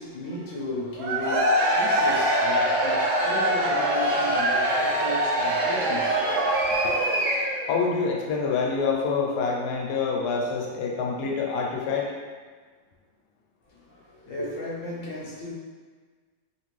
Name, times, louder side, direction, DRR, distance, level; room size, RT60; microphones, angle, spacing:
voice 1, 0.0-7.0 13.6-15.5, left 1 dB, 65° left, -5 dB, 0.8 m, -35 dB
Cheering / Crowd, 1.0-7.7, right 1 dB, 65° right, 0.8 m, -23 dB
voice 2, 7.7-12.1, left 4 dB, 85° left, -1 dB, 1.1 m, -26 dB
3.0 x 2.5 x 3.0 m, 1.5 s
omnidirectional pair, 1.7 m